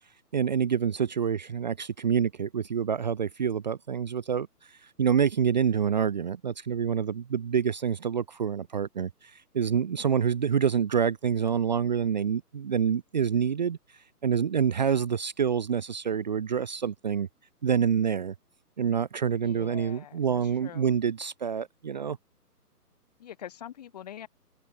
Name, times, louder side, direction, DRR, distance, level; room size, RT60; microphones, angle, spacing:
voice 1, 0.3-13.8 14.2-17.3 17.6-18.3 18.8-22.2, right 7 dB, 30° right, 0.9 m, -27 dB
voice 2, 19.4-20.9 23.2-24.3, left 10 dB, 25° left, 1.4 m, -44 dB
hypercardioid pair, 160°, 48 cm